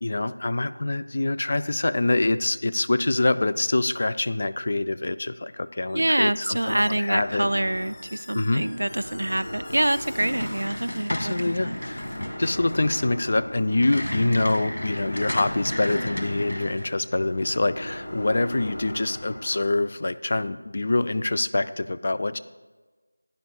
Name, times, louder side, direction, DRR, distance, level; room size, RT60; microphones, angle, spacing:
voice 1, 0.0-7.5 8.3-8.6 11.1-12.0 12.4-22.4, left 2 dB, 40° left, 12 dB, 0.3 m, -25 dB
Squeak, 5.9-6.2 6.5-12.2, left 1 dB, 15° left, 1.8 m, -48 dB
voice 2, 5.9-11.8, right 1 dB, 70° right, 16 dB, 0.3 m, -26 dB
sound 1, 7.2-19.7, left 1 dB, 55° left, 1.4 m, -39 dB
sound 2, 10.2-16.9, left 1 dB, 80° left, 1.9 m, -33 dB
15.5 x 10.5 x 2.3 m, 1.3 s
figure-of-eight pair, 175°, 0 cm